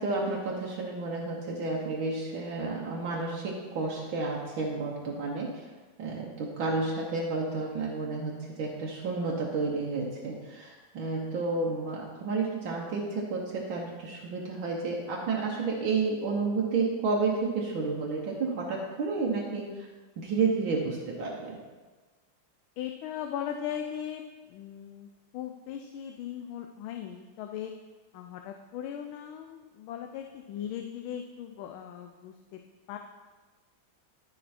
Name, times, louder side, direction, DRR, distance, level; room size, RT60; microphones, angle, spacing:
voice 1, 0.0-5.5 6.0-19.9 20.2-21.6, right 3 dB, 70° right, -2 dB, 1.8 m, -31 dB
voice 2, 22.8-24.2 24.5-25.1 25.3-27.7 28.1-32.6 32.9-33.0, left 9 dB, 80° left, 4 dB, 1.4 m, -38 dB
12.5 x 5.4 x 4.3 m, 1.3 s
omnidirectional pair, 2.2 m